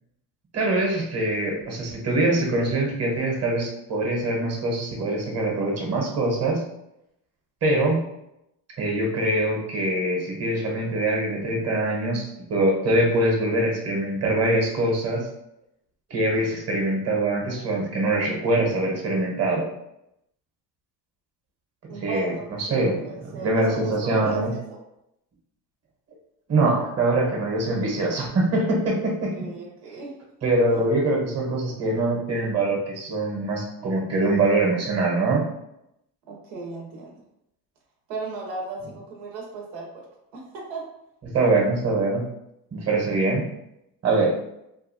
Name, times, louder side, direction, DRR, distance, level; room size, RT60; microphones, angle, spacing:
voice 1, 0.5-6.6 7.6-8.0 8.8-15.3 16.1-19.7 22.0-24.5 26.5-29.3 29.9-30.0 30.4-35.5 41.3-42.3 42.7-43.4 44.0-44.3, right 2 dB, 30° right, -1 dB, 1.0 m, -23 dB
voice 2, 21.9-24.8 29.3-30.1 30.4-30.8 36.3-37.1 38.1-40.0 40.3-40.8, right 3 dB, 85° right, -1 dB, 0.8 m, -36 dB
2.6 x 2.3 x 2.7 m, 0.82 s
supercardioid pair, 85°, 47 cm